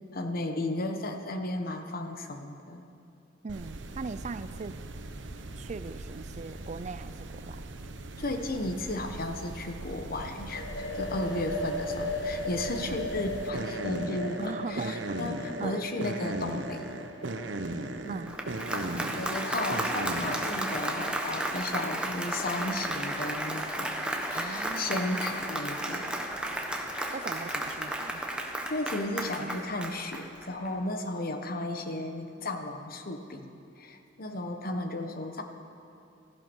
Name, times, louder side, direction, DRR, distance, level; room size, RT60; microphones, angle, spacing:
voice 1, 0.1-2.9 8.2-16.8 18.0-18.2 18.7-26.2 28.7-35.4, left 2 dB, 50° left, 6 dB, 1.2 m, -34 dB
voice 2, 3.4-4.8 5.6-7.7 12.9-13.1 14.4-15.2 15.6-15.9 18.1-18.4 24.3-25.2 27.1-28.2, right 4 dB, 40° right, 14 dB, 0.4 m, -39 dB
sound 1, 3.5-20.9, right 2 dB, 75° right, 1.0 m, -39 dB
sound 2, 10.5-18.1, left 2 dB, 70° left, 1.3 m, -37 dB
Applause, 18.1-30.7, right 1 dB, 5° right, 1.3 m, -33 dB
16.0 x 14.5 x 6.3 m, 2.7 s
head